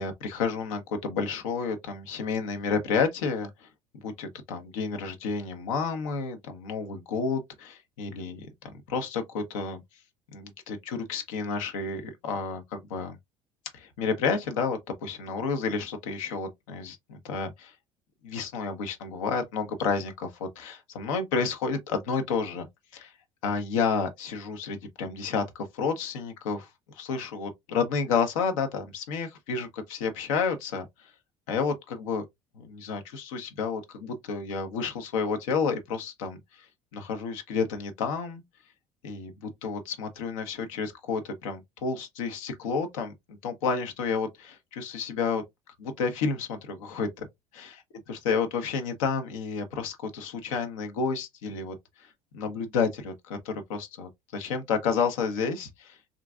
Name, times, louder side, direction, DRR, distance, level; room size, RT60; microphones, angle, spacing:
voice 1, 0.0-3.7 4.0-9.8 10.3-13.2 13.7-17.7 18.2-22.7 22.9-23.1 23.4-26.7 27.0-31.1 31.5-32.3 32.6-36.6 36.9-38.4 39.0-45.4 45.8-47.3 47.5-47.8 48.1-56.0, left 5 dB, 70° left, 0.7 m, -30 dB
3.7 x 2.5 x 2.3 m
figure-of-eight pair, 60°, 18 cm